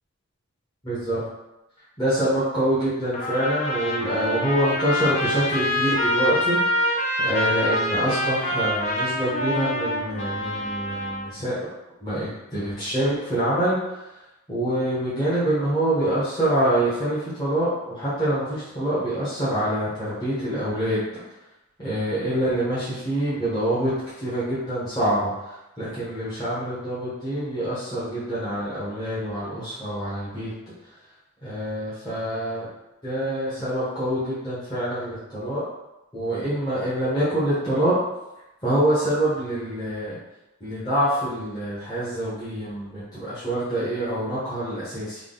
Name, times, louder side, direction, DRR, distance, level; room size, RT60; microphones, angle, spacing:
voice 1, 0.8-1.2 2.0-11.7 12.0-14.0 14.5-21.0 21.8-23.9 24.2-30.5 31.4-32.7 33.0-35.6 36.1-38.0 38.6-40.2 40.6-45.2, right 1 dB, 20° left, -12 dB, 1.0 m, -26 dB
Trumpet, 3.1-11.3, left 1 dB, 35° left, 0.5 m, -25 dB
3.6 x 2.3 x 3.8 m, 0.95 s
head